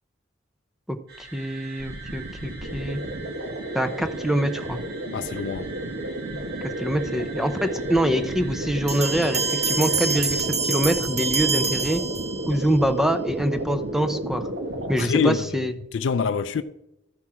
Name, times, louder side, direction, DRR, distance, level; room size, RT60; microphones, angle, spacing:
voice 1, 0.9-3.0 3.7-4.8 6.8-12.0 12.5-14.5 14.9-15.7, right 1 dB, ahead, 0.6 m, -25 dB
sound 1, 1.1-10.4, right 5 dB, 55° right, 2.2 m, -43 dB
sound 2, 1.8-14.9, right 1 dB, 80° right, 1.5 m, -32 dB
voice 2, 5.1-5.7 15.0-16.6, left 6 dB, 70° left, 0.4 m, -25 dB
Bell, 8.9-12.7, right 4 dB, 35° right, 1.3 m, -26 dB
13.0 x 5.9 x 4.8 m
head